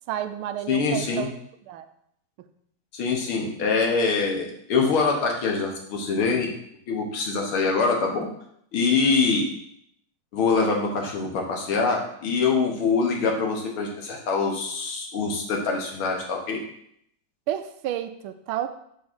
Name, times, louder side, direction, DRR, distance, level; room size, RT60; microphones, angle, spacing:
voice 1, 0.1-1.3 1.7-1.9 17.5-18.7, right 11 dB, 85° right, 10 dB, 1.5 m, -30 dB
voice 2, 0.7-1.3 2.9-6.5 6.9-8.3 8.7-9.5 10.3-16.6, left 4 dB, 80° left, 1 dB, 2.1 m, -24 dB
6.2 x 3.7 x 6.1 m, 0.72 s
omnidirectional pair, 2.3 m